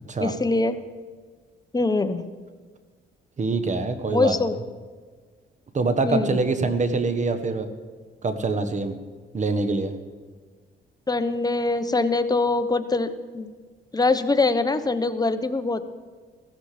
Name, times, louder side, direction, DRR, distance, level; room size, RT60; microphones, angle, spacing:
voice 1, 0.2-0.8 1.7-2.2 4.1-4.6 6.0-6.4 11.1-13.5 13.9-15.8, left 3 dB, 20° left, 10 dB, 1.0 m, -23 dB
voice 2, 3.4-4.4 5.7-7.7 8.2-8.9 9.3-9.9, right 3 dB, 35° right, 10 dB, 1.4 m, -24 dB
15.5 x 13.5 x 5.1 m, 1.5 s
cardioid pair, 90°, 20 cm